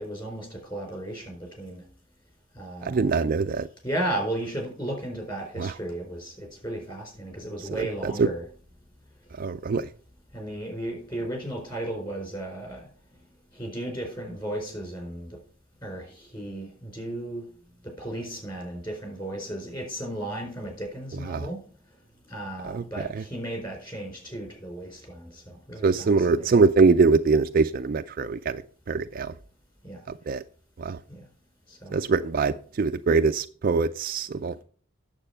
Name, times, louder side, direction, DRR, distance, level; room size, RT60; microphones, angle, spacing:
voice 1, 0.0-1.8 2.6-3.2 3.8-8.4 10.3-12.8 13.5-15.3 15.8-17.5 17.8-21.6 22.3-26.6 29.8-30.0 31.1-31.2 31.8-31.9, right 1 dB, 20° left, 4.1 m, -35 dB
voice 2, 2.8-3.7 5.6-5.7 7.7-8.3 9.4-9.9 21.3-21.5 22.6-22.8 25.8-28.6 28.9-29.3 30.3-30.4 30.8-31.0 31.9-34.6, right 4 dB, 45° right, 0.4 m, -23 dB
8.9 x 7.3 x 5.6 m
head